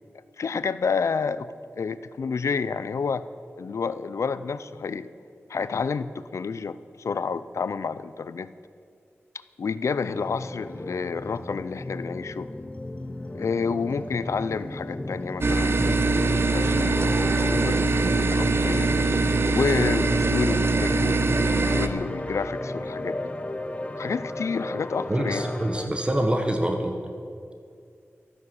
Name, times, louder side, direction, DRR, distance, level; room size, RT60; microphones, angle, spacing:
voice 1, 0.4-3.2 3.6-5.1 5.5-8.5 9.6-12.5 13.3-17.0 17.5-18.9 19.5-21.4 21.8-23.2 24.0-25.5, left 5 dB, 90° left, 15 dB, 0.5 m, -29 dB
sound 1, 10.1-25.9, left 1 dB, 25° left, 0.9 m, -34 dB
sound 2, 15.4-21.9, right 3 dB, 55° right, 0.9 m, -22 dB
voice 2, 25.1-26.9, right 1 dB, 20° right, 4 dB, 1.2 m, -25 dB
13.0 x 9.7 x 7.8 m, 2.4 s
wide cardioid pair, 90°, 5 cm